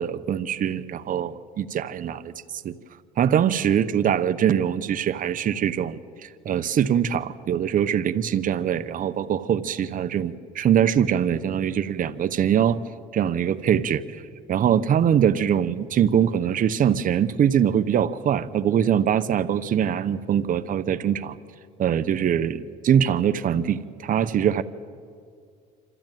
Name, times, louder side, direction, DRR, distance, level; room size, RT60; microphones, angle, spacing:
voice 1, 0.0-2.3 2.6-2.7 3.2-6.0 6.4-12.8 13.1-14.0 14.5-21.4 21.8-24.6, right 9 dB, 45° right, 12 dB, 0.9 m, -22 dB
26.5 x 13.0 x 9.1 m, 2.2 s
cardioid pair, 105°, 19 cm